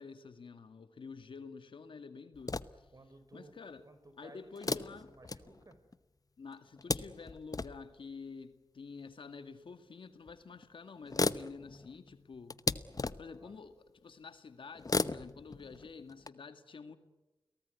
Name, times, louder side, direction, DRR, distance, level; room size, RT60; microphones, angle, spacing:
voice 1, 0.0-2.9 3.3-3.8 4.2-5.1 6.4-12.6 13.2-17.0, left 5 dB, 85° left, 1.9 m, -49 dB
sound 1, 2.3-3.0 4.6-5.9 6.5-7.9 9.1-9.2 10.3-10.4 10.6-10.7 11.0-13.5 14.7-16.3, left 3 dB, 45° left, 1.0 m, -36 dB
voice 2, 2.9-3.6 3.8-5.8 13.3-13.5, right 2 dB, 45° right, 4.9 m, -57 dB
29.5 x 18.5 x 9.5 m
cardioid pair, 45°, 9 cm